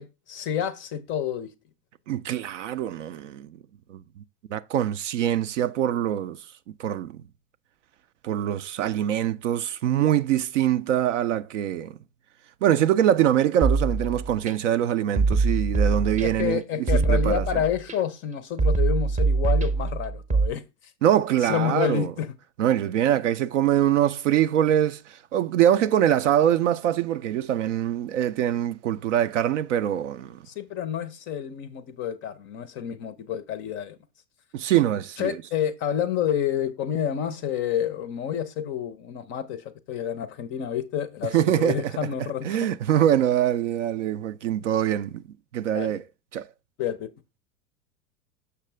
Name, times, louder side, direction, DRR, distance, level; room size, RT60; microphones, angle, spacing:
voice 1, 0.0-1.5 16.2-20.6 21.4-22.3 30.5-34.0 35.2-42.6 45.7-45.9 46.8-47.1, left 9 dB, 25° left, 0.5 m, -29 dB
voice 2, 2.1-3.5 3.9-4.0 4.5-6.4 6.8-7.2 8.2-12.0 12.6-16.6 16.9-17.4 21.0-22.1 22.6-30.4 34.5-35.4 41.3-41.8 42.4-45.2 45.5-46.0 46.3-46.5, right 11 dB, 50° right, 0.5 m, -23 dB
sound 1, 13.6-14.5 15.2-16.5 16.9-17.9 18.6-20.5, right 4 dB, 15° right, 0.7 m, -23 dB
6.7 x 5.9 x 3.3 m
figure-of-eight pair, 90°, 50 cm